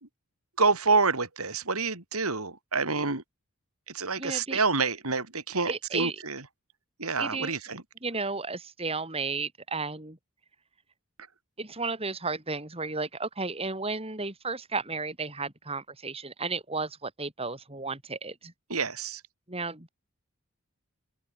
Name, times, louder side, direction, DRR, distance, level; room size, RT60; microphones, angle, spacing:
voice 1, 0.6-3.2 3.9-6.4 7.0-7.8 18.7-19.2, right 4 dB, 80° right, 4.8 m, -27 dB
voice 2, 4.2-4.6 5.7-6.2 7.2-7.5 8.0-10.2 11.6-18.5 19.5-19.9, right 3 dB, 25° right, 3.5 m, -33 dB
head